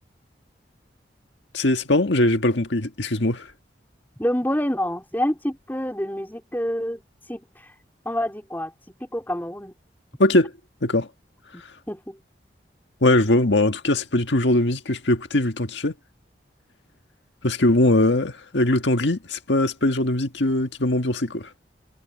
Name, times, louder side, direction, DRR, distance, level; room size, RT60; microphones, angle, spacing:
voice 1, 1.5-3.5 10.2-10.5 10.8-11.1 13.0-15.9 17.4-21.5, left 1 dB, 85° left, 1.7 m, -21 dB
voice 2, 4.2-7.0 7.3-7.7 8.1-8.7 9.1-9.7 11.5-12.2, equal, 10° left, 3.7 m, -27 dB
head